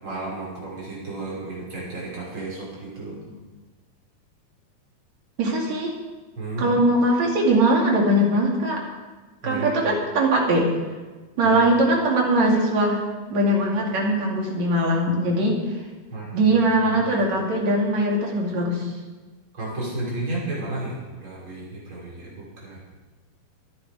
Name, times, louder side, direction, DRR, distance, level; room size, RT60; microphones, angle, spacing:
voice 1, 0.0-3.2 6.4-6.7 9.4-9.7 11.4-11.6 16.1-16.6 16.8-17.0 19.5-22.8, right 2 dB, 30° right, -6 dB, 6.3 m, -33 dB
voice 2, 5.4-5.9 6.6-8.8 9.4-10.7 11.4-13.0 13.3-15.6 16.3-18.9, right 1 dB, 50° right, -1 dB, 3.7 m, -21 dB
24.0 x 9.9 x 5.0 m, 1.3 s
omnidirectional pair, 4.2 m